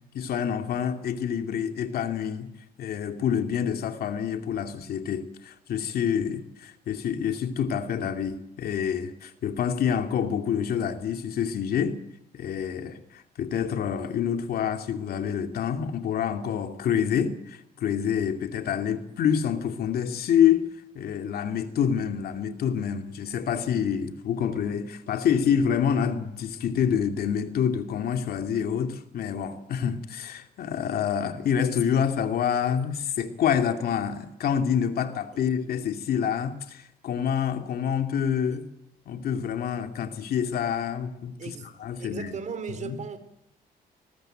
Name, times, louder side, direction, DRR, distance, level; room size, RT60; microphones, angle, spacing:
voice 1, 0.1-2.5 2.8-12.0 12.3-20.7 20.9-38.6 39.1-41.5 41.8-42.3 42.8-43.0, left 8 dB, 70° left, 2.6 m, -27 dB
voice 2, 41.4-43.2, right 6 dB, 50° right, 4.0 m, -37 dB
21.0 x 20.0 x 9.0 m
cardioid pair, 125°, 16 cm